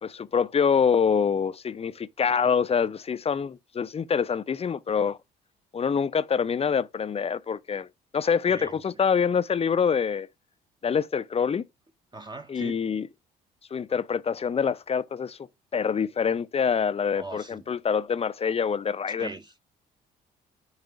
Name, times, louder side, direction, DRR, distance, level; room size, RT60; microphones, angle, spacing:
voice 1, 0.0-5.2 5.7-7.9 8.1-10.3 10.8-11.6 12.5-13.1 13.7-15.4 15.7-19.3, left 6 dB, 30° left, 0.5 m, -25 dB
voice 2, 12.1-12.8 17.1-17.6 19.2-19.6, right 3 dB, 20° right, 0.8 m, -40 dB
5.6 x 4.8 x 4.7 m
hypercardioid pair, 50°, 21 cm